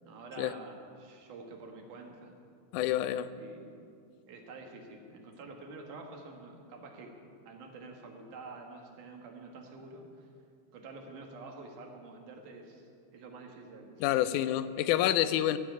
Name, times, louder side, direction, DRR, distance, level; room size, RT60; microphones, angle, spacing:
voice 1, 0.0-2.3 3.4-3.8 4.3-7.1 7.5-10.3 10.7-14.2, right 3 dB, 85° right, 2 dB, 3.1 m, -48 dB
voice 2, 2.7-3.3 14.0-15.6, left 12 dB, 85° left, 13 dB, 2.1 m, -28 dB
14.0 x 7.5 x 9.3 m, 2.3 s
omnidirectional pair, 3.5 m